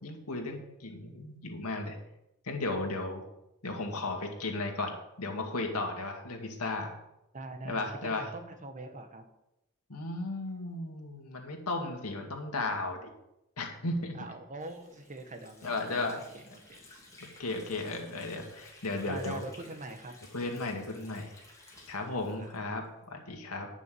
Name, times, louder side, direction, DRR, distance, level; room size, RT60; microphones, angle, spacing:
voice 1, 0.0-2.0 2.4-3.2 3.6-6.9 7.6-8.3 9.9-13.1 13.6-14.2 15.6-16.2 17.2-19.4 20.3-21.3 21.9-23.7, left 2 dB, 90° left, 2 dB, 2.2 m, -35 dB
voice 2, 7.3-9.2 14.1-16.8 19.0-20.2 22.4-22.7, right 2 dB, 35° right, 7 dB, 1.2 m, -43 dB
Water / Sink (filling or washing), 14.6-23.1, left 2 dB, 15° left, 2.8 m, -55 dB
10.5 x 6.2 x 7.7 m, 0.87 s
head